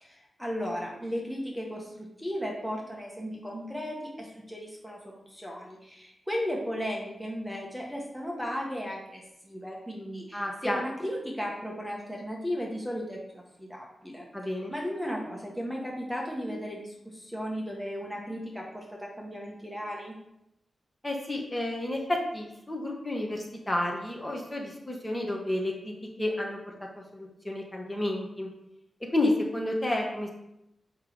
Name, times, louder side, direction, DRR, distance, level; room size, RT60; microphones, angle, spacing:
voice 1, 0.0-20.3, equal, ahead, -1 dB, 1.4 m, -36 dB
voice 2, 10.3-10.8 14.3-14.7 21.0-25.9 26.2-26.6 27.1-28.5 29.1-30.3, left 1 dB, 15° left, 0 dB, 1.4 m, -30 dB
7.2 x 5.6 x 5.1 m, 0.83 s
wide cardioid pair, 120°, 0 cm